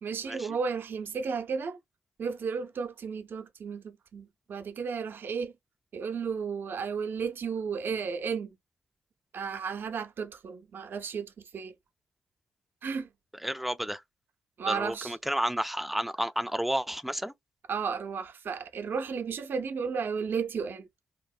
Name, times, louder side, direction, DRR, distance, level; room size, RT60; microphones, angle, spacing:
voice 1, 0.0-1.8 2.2-5.5 5.9-8.6 9.3-11.7 12.8-13.1 14.6-15.1 17.7-20.9, right 5 dB, 60° right, 0.6 m, -33 dB
voice 2, 13.4-14.0 14.7-17.3, equal, 5° right, 0.4 m, -31 dB
2.9 x 2.0 x 2.3 m
supercardioid pair, 60°, 4 cm